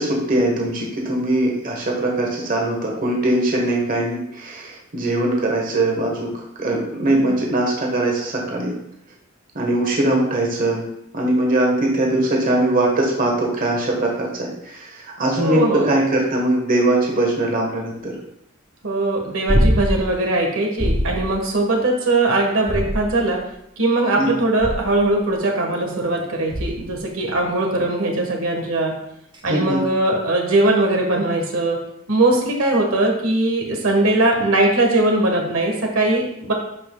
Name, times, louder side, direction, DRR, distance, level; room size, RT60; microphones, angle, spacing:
voice 1, 0.0-6.3 6.6-8.8 9.5-10.8 11.1-18.1 24.2-24.3 29.4-29.8, right 1 dB, 40° right, -1 dB, 1.3 m, -21 dB
voice 2, 15.4-15.9 18.8-23.4 23.8-29.0 29.4-31.8 32.1-36.5, right 2 dB, 80° right, 1 dB, 1.4 m, -20 dB
sound 1, 19.5-20.1 20.8-21.3 22.6-23.4 24.6-25.1 26.5-27.0 29.3-29.4, equal, 20° right, 0.8 m, -22 dB
11.5 x 5.4 x 2.3 m, 0.78 s
head